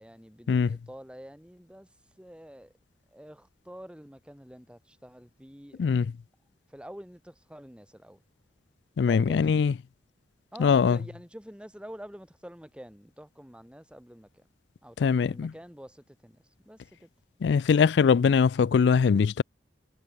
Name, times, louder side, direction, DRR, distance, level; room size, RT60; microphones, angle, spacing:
voice 1, 0.0-1.9 2.2-2.7 3.1-5.9 6.7-8.2 9.0-9.7 10.5-14.4 14.8-17.1, equal, 5° right, 2.3 m, -47 dB
voice 2, 9.0-9.7 10.6-11.0 15.0-15.5 17.4-19.4, left 6 dB, 75° left, 0.4 m, -22 dB
head